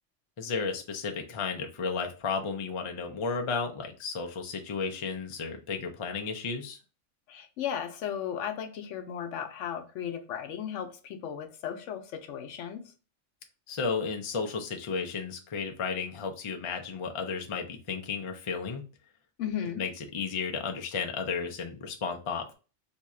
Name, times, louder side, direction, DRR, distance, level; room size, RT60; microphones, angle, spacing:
voice 1, 0.4-6.8 13.7-18.8 19.8-22.5, left 5 dB, 50° left, 0.3 m, -33 dB
voice 2, 7.3-12.9 19.4-19.8, left 9 dB, 85° left, 1.0 m, -35 dB
2.7 x 2.3 x 4.1 m
omnidirectional pair, 1.2 m